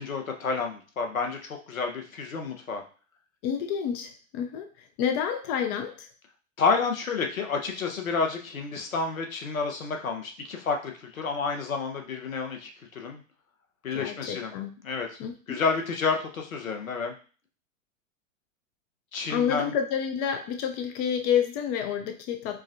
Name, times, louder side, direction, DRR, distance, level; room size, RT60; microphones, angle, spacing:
voice 1, 0.0-2.8 6.6-13.2 13.8-14.5 14.8-15.1 15.5-17.1 19.1-19.7, left 4 dB, 85° left, 4 dB, 0.8 m, -30 dB
voice 2, 3.4-4.7 5.0-6.1 13.9-14.7 15.2-15.6 19.3-22.6, left 8 dB, 30° left, 6 dB, 0.4 m, -29 dB
4.7 x 2.1 x 2.5 m, 0.38 s
figure-of-eight pair, 95°, 40 cm